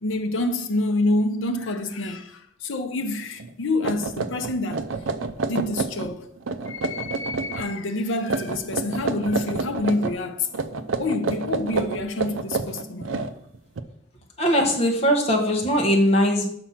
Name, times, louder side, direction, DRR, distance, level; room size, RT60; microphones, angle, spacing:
voice 1, 0.0-4.9 5.5-6.3 6.7-10.5 11.0-13.1, left 2 dB, 70° left, 0.7 m, -27 dB
sound 1, 3.4-3.5 3.8-6.1 6.4-7.6 8.2-10.2 10.5-13.8, right 4 dB, 75° right, 0.5 m, -29 dB
voice 2, 14.4-16.4, equal, 30° left, 1.2 m, -20 dB
6.0 x 4.9 x 5.7 m
head